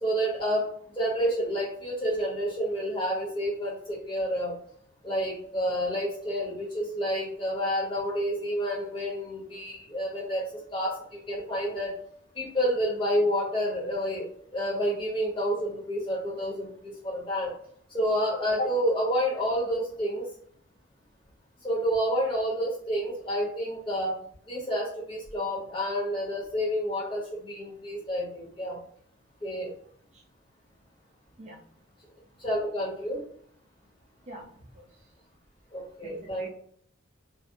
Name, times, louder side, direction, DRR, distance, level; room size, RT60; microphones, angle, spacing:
voice 1, 0.0-0.7 0.9-4.5 5.0-12.0 12.3-17.5 17.9-20.3 21.6-24.2 24.5-28.8 29.4-29.7 32.4-33.2 35.7-36.5, equal, 25° left, -4 dB, 0.9 m, -29 dB
voice 2, 34.3-34.8 36.0-36.5, right 1 dB, 30° right, -1 dB, 0.4 m, -46 dB
2.4 x 2.0 x 2.6 m, 0.62 s
head